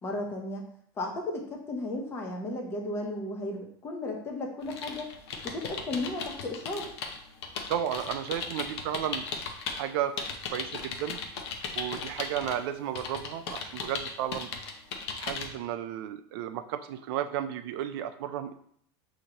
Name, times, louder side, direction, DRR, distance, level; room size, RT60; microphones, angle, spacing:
voice 1, 0.0-0.7 1.0-5.1 5.4-6.9, left 2 dB, 20° left, 1 dB, 0.8 m, -34 dB
sound 1, 4.6-9.8 10.2-12.6 13.0-15.5, left 5 dB, 80° left, 0.8 m, -37 dB
voice 2, 7.7-9.3 9.7-10.2 10.5-11.2 11.7-14.5 15.2-18.5, right 10 dB, 65° right, 9 dB, 0.4 m, -33 dB
6.4 x 2.8 x 2.9 m, 0.65 s
supercardioid pair, 165°, 14 cm